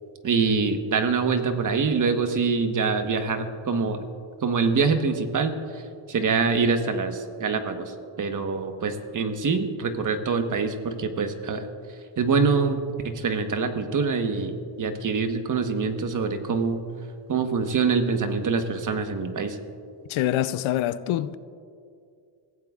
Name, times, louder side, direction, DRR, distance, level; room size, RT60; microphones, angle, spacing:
voice 1, 0.2-4.1 4.4-5.8 6.1-7.9 8.2-11.7 12.2-12.8 13.0-16.8 17.3-19.6, right 5 dB, 40° right, 1.3 m, -25 dB
voice 2, 20.1-21.3, left 12 dB, 80° left, 0.7 m, -25 dB
26.0 x 15.5 x 2.4 m
cardioid pair, 115°, 47 cm